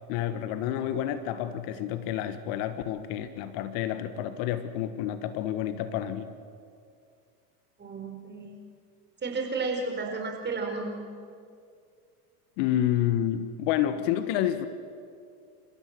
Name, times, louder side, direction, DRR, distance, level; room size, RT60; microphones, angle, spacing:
voice 1, 0.1-6.3 12.6-14.7, left 11 dB, 55° left, 11 dB, 1.5 m, -29 dB
voice 2, 7.8-8.6 9.2-11.1, right 3 dB, 20° right, 2 dB, 5.0 m, -32 dB
29.5 x 15.0 x 7.7 m, 2.3 s
hypercardioid pair, 110°, 47 cm